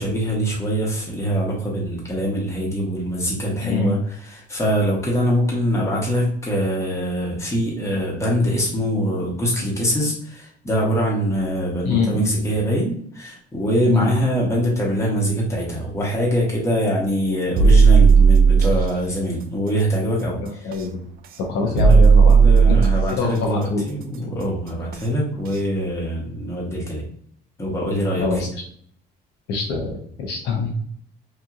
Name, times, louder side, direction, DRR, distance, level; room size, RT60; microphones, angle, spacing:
voice 1, 0.0-4.0 4.2-20.7 21.6-27.0 27.6-28.5 30.5-30.7, equal, 15° left, -4 dB, 1.1 m, -23 dB
voice 2, 3.6-3.9 11.8-12.4 13.9-14.1 20.4-21.0 21.5-22.3 22.7-22.8 23.1-23.9 28.2-28.5 29.5-30.7, left 3 dB, 85° left, 0 dB, 0.8 m, -23 dB
sound 1, 17.6-18.8 20.7-20.8 21.8-23.1 24.9-25.0 25.5-25.6, right 5 dB, 60° right, 0.4 m, -13 dB
2.9 x 2.5 x 2.4 m, 0.64 s
cardioid pair, 110°, 17 cm